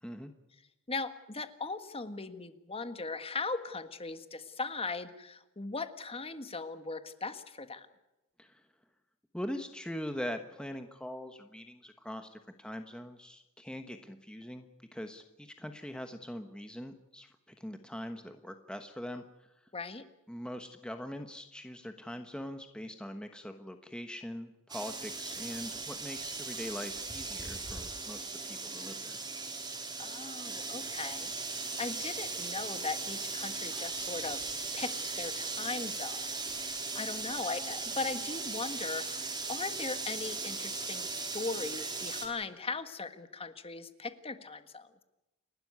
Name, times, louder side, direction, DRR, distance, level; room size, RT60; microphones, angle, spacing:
voice 1, 0.0-0.3 8.4-8.7 9.3-19.2 20.3-29.2, equal, 5° left, 6 dB, 1.2 m, -42 dB
voice 2, 0.9-7.9 19.7-20.0 30.0-34.4 34.7-36.3 36.6-45.0, left 3 dB, 25° left, 10 dB, 1.5 m, -39 dB
sound 1, 24.7-42.3, right 3 dB, 20° right, 3.7 m, -38 dB
29.5 x 12.5 x 9.5 m, 0.96 s
head